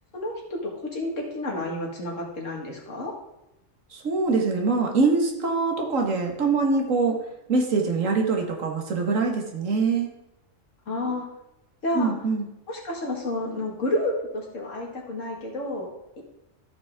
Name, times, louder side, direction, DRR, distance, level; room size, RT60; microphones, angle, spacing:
voice 1, 0.1-3.1 10.9-11.3 11.8-12.1 12.7-15.9 16.2-16.3, left 1 dB, 70° left, -1 dB, 2.3 m, -30 dB
voice 2, 3.9-7.2 7.5-10.1 11.9-12.5, right 4 dB, 75° right, 2 dB, 1.8 m, -23 dB
14.0 x 6.1 x 3.6 m, 0.89 s
omnidirectional pair, 1.4 m